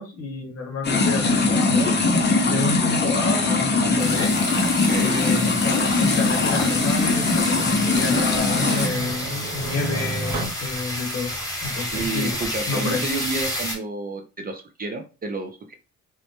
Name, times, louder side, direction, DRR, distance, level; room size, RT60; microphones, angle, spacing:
voice 1, 0.0-1.9 2.4-4.4 5.0-11.3 11.6-12.4 12.7-13.0, left 3 dB, 50° left, 1 dB, 1.0 m, -29 dB
sound 1, 0.8-8.9, left 3 dB, 35° left, 0.6 m, -21 dB
sound 2, 0.9-10.5, right 4 dB, 80° right, 0.7 m, -34 dB
sound 3, 4.0-13.7, left 1 dB, 10° left, 1.0 m, -31 dB
voice 2, 4.8-5.4 11.9-15.7, right 3 dB, 30° right, 5 dB, 0.4 m, -30 dB
2.1 x 2.0 x 2.8 m, 0.32 s
cardioid pair, 90°, 30 cm